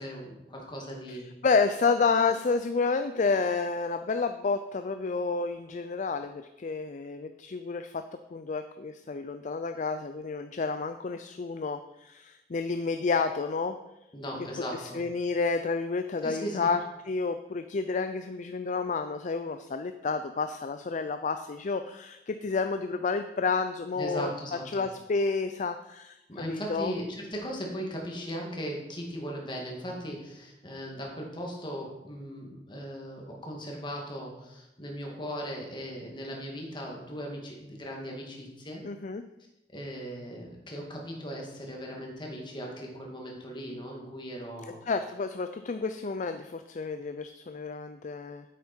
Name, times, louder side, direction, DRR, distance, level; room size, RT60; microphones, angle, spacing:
voice 1, 0.0-1.2 14.1-15.0 16.2-16.7 24.0-24.9 26.3-38.8 39.7-44.8, equal, 25° left, 0 dB, 2.1 m, -38 dB
voice 2, 1.4-8.0 8.3-13.8 14.7-24.3 24.7-26.9 38.8-39.2 44.8-48.4, left 4 dB, 45° left, 9 dB, 0.4 m, -30 dB
9.5 x 8.3 x 4.4 m, 0.94 s
head